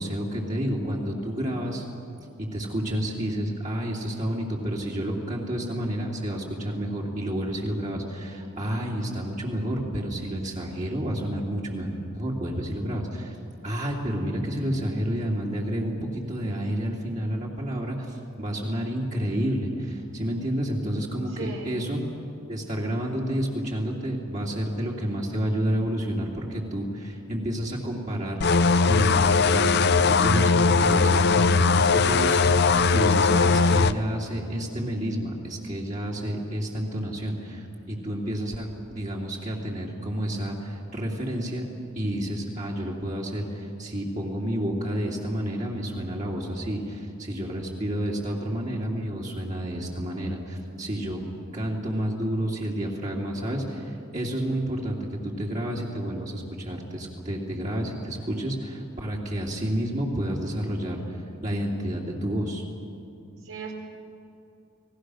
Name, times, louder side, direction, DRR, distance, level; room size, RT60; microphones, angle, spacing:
voice 1, 0.0-1.8 2.4-13.4 13.6-22.0 22.5-38.7 38.9-41.7 41.9-51.2 51.5-61.0 61.4-62.6, equal, 35° right, -3 dB, 2.8 m, -30 dB
voice 2, 21.3-21.7 63.4-63.7, right 4 dB, 75° right, 1 dB, 4.2 m, -37 dB
sound 1, 28.4-33.9, left 4 dB, 55° left, 0.6 m, -20 dB
30.0 x 19.5 x 6.4 m, 2.6 s
head